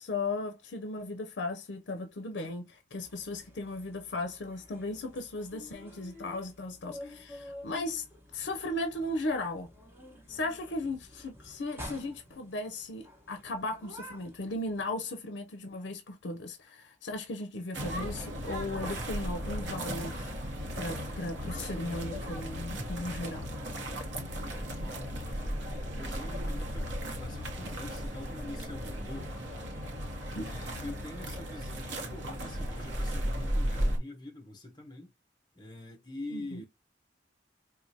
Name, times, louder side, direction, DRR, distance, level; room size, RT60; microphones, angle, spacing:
voice 1, 0.0-8.1 8.3-9.7 10.3-20.3 20.8-23.5 30.3-30.4 36.3-36.6, left 2 dB, 75° left, 0.5 m, -36 dB
sound 1, 3.0-14.9, equal, 15° right, 1.1 m, -50 dB
sound 2, 17.7-34.0, equal, 80° right, 0.9 m, -35 dB
voice 2, 24.6-25.0 25.7-29.3 30.4-35.1 35.5-36.7, left 2 dB, 25° left, 0.8 m, -45 dB
4.7 x 2.2 x 2.7 m
head